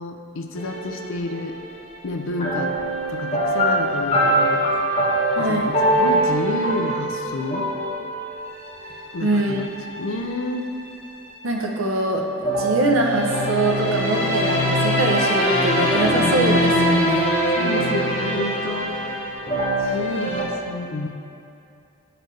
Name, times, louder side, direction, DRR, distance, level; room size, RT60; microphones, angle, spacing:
voice 1, 0.0-1.6 2.0-2.7 3.1-4.6 5.4-7.7 9.1-10.6 16.2-16.3 17.1-17.3 17.6-18.9 19.8-21.1, left 2 dB, 70° left, 4 dB, 0.5 m, -29 dB
sound 1, 0.6-1.6 2.3-10.5 12.4-20.4, equal, 30° left, 0.9 m, -22 dB
voice 2, 5.3-5.7 9.2-9.6 11.4-17.3, right 2 dB, 80° right, 1 dB, 0.7 m, -23 dB
9.0 x 3.9 x 3.2 m, 2.7 s
head